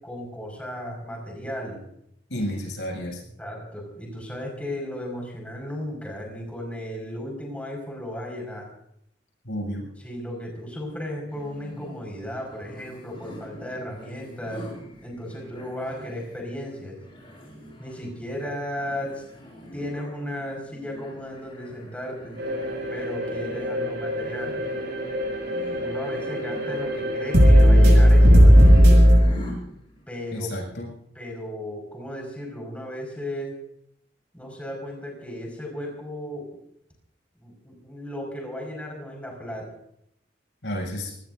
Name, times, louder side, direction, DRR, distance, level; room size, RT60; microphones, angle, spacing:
voice 1, 0.0-1.8 2.4-2.5 3.4-8.7 10.0-14.6 15.0-17.0 17.8-19.2 19.7-22.3 22.9-24.5 25.8-28.9 30.1-30.5 31.2-33.5 34.3-36.5 37.4-39.7, left 1 dB, 10° left, 0 dB, 5.4 m, -35 dB
voice 2, 2.3-3.2 9.4-9.9 30.3-30.9 40.6-41.1, equal, 80° left, -1 dB, 7.6 m, -31 dB
sound 1, 11.3-30.0, equal, 30° left, 7.6 m, -44 dB
sound 2, 22.4-29.2, equal, 65° right, 7.4 m, -17 dB
27.0 x 19.5 x 2.7 m, 0.73 s
head